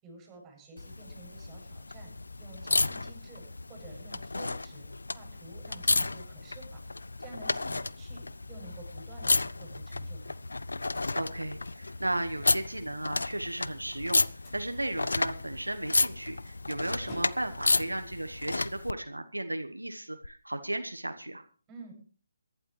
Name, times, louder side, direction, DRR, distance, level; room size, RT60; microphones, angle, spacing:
voice 1, 0.0-2.1 2.4-6.8 7.2-10.4 21.7-21.9, right 3 dB, 15° right, 1 dB, 7.8 m, -51 dB
sound 1, 0.8-18.9 20.2-20.3, left 3 dB, 75° left, 0.5 m, -32 dB
voice 2, 11.1-14.2 14.5-21.4, right 1 dB, 85° right, 7 dB, 1.2 m, -35 dB
Slam, 13.8-19.4, equal, 35° left, 7.0 m, -52 dB
23.0 x 11.5 x 3.3 m, 0.40 s
figure-of-eight pair, 145°, 0 cm